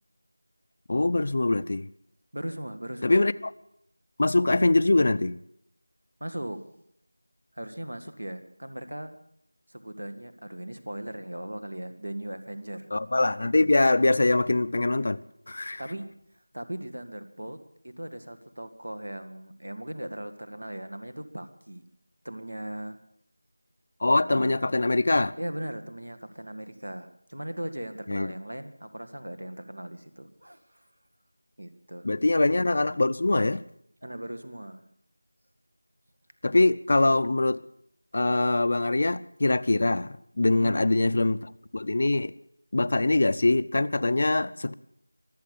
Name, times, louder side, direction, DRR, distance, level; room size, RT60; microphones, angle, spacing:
voice 1, 0.9-1.9 3.0-3.5 4.2-5.4 12.9-15.2 15.5-15.8 24.0-25.3 28.1-28.3 32.0-33.6 36.4-37.6 38.1-42.3 42.7-44.7, left 2 dB, 45° left, 0.5 m, -23 dB
voice 2, 2.3-3.2 6.2-6.6 7.5-9.2 9.7-12.9 15.8-16.1 16.5-17.6 17.8-21.9 22.2-23.0 24.3-24.5 25.4-30.8 31.6-32.1 34.0-34.9 40.5-40.8, right 1 dB, 85° right, 2.0 m, -38 dB
24.0 x 8.3 x 6.8 m
figure-of-eight pair, 175°, 0 cm